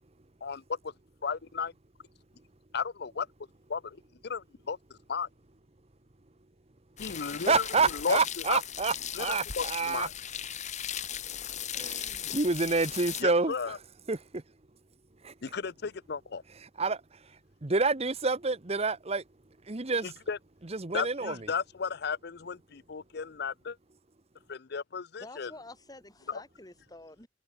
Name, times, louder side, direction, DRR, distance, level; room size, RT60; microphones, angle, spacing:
voice 1, 0.4-0.9 1.2-1.7 2.7-3.3 3.7-4.0 4.2-4.8 5.1-5.3 7.0-7.6 7.9-8.2 8.5-8.6 9.2-9.3 9.6-10.1 13.2-13.8 15.4-16.4 20.0-20.4 20.9-23.8 24.5-25.5, left 5 dB, 60° left, 0.6 m, -34 dB
sound 1, 7.0-13.2, left 9 dB, 40° left, 1.7 m, -38 dB
voice 2, 7.1-10.1 11.7-13.8 14.1-14.4 15.2-15.3 16.6-19.2 19.6-20.1 20.6-21.5, right 4 dB, 35° right, 1.1 m, -29 dB
voice 3, 25.2-27.3, left 2 dB, 20° left, 4.3 m, -48 dB
head